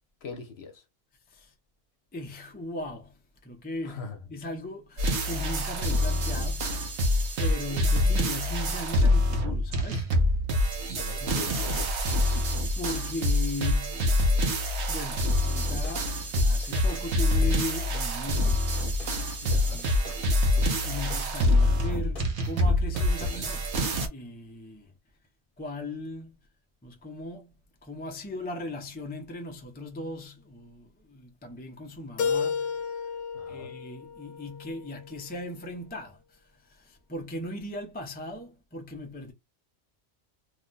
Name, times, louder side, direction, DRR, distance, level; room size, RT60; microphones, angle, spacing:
voice 1, 0.2-0.8 3.8-4.2 11.0-11.9 19.4-19.8 33.3-33.7, left 4 dB, 60° left, 0.9 m, -41 dB
voice 2, 2.1-6.9 7.4-10.1 11.2-11.5 12.8-14.1 14.9-18.9 19.4-20.0 20.8-23.7 24.0-24.9 25.6-26.4 26.8-27.5 27.8-33.0 33.5-39.3, left 1 dB, 15° left, 0.4 m, -38 dB
sound 1, 5.0-24.1, left 1 dB, 70° right, 1.0 m, -26 dB
sound 2, 15.3-23.7, left 4 dB, 30° left, 1.0 m, -36 dB
Keyboard (musical), 32.2-35.1, left 6 dB, 85° left, 1.0 m, -32 dB
2.9 x 2.1 x 3.8 m
omnidirectional pair, 1.2 m